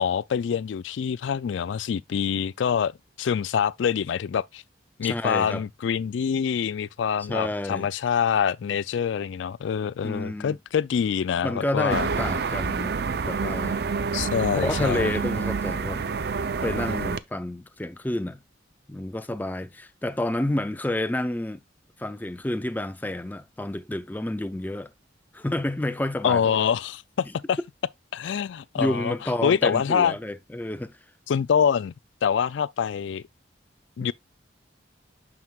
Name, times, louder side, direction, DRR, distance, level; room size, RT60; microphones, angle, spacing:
voice 1, 0.0-2.9 3.2-4.6 5.0-12.1 14.1-15.2 26.2-27.6 28.1-29.1 29.4-30.1 31.3-31.9 32.2-33.2 34.0-34.1, left 7 dB, 75° left, 0.3 m, -25 dB
voice 2, 5.0-5.6 7.2-7.9 10.0-10.6 11.4-13.0 13.2-13.8 14.5-16.0 16.6-18.4 18.9-21.6 22.0-24.9 25.3-26.6 27.2-27.3 28.8-31.0, left 1 dB, 10° left, 0.4 m, -29 dB
sound 1, 11.9-17.2, right 5 dB, 55° right, 0.5 m, -28 dB
9.4 x 6.0 x 2.3 m
head